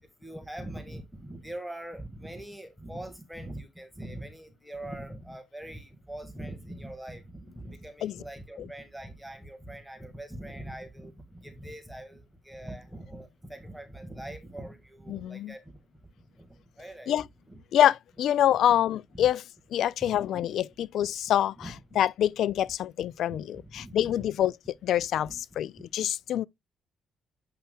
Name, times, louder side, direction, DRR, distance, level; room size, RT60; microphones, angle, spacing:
voice 1, 0.2-15.7 16.4-17.1 17.5-17.6 19.1-19.3 20.0-20.2 21.0-21.1 21.6-21.7 23.3-24.2 25.1-25.9, right 1 dB, 5° right, 1.6 m, -42 dB
voice 2, 15.1-15.5 17.1-17.3 17.7-19.4 19.7-24.5 24.8-26.5, left 11 dB, 75° left, 0.3 m, -26 dB
8.1 x 5.6 x 2.2 m
cardioid pair, 90°, 0 cm